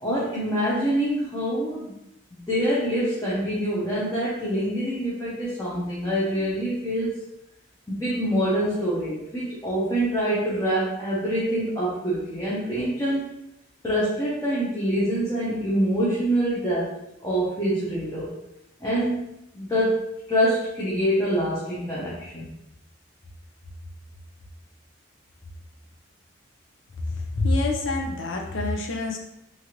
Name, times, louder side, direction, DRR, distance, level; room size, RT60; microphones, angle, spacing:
voice 1, 0.0-2.0 2.3-7.1 7.9-13.2 13.8-16.9 17.2-18.3 18.8-19.3 19.5-20.0 20.3-22.5, equal, 15° left, -9 dB, 0.6 m, -25 dB
voice 2, 27.3-29.2, left 2 dB, 70° left, 1 dB, 0.5 m, -26 dB
3.1 x 2.5 x 2.9 m, 0.87 s
head